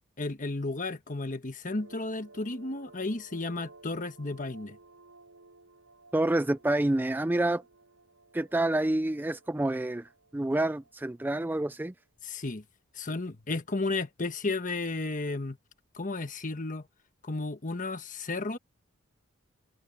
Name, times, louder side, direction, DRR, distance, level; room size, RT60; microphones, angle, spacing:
voice 1, 0.2-4.8 12.2-12.6 12.9-15.6 15.9-16.8 17.2-18.6, left 3 dB, 40° left, 1.3 m, -33 dB
sound 1, 1.7-11.5, right 3 dB, 85° right, 6.8 m, -56 dB
voice 2, 6.1-7.6 8.3-11.9, right 1 dB, 10° right, 0.3 m, -28 dB
head